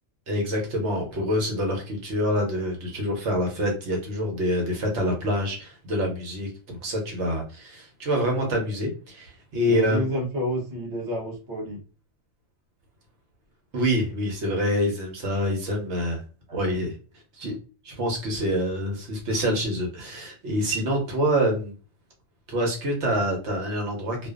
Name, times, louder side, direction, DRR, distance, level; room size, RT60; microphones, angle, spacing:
voice 1, 0.3-10.0 13.7-16.2 16.5-16.9 17.3-17.5 17.8-21.7 22.5-24.3, equal, 65° right, 1 dB, 1.0 m, -26 dB
voice 2, 9.7-11.8 16.5-16.6, equal, 20° right, -2 dB, 0.6 m, -29 dB
2.5 x 2.1 x 2.3 m, 0.36 s
omnidirectional pair, 1.3 m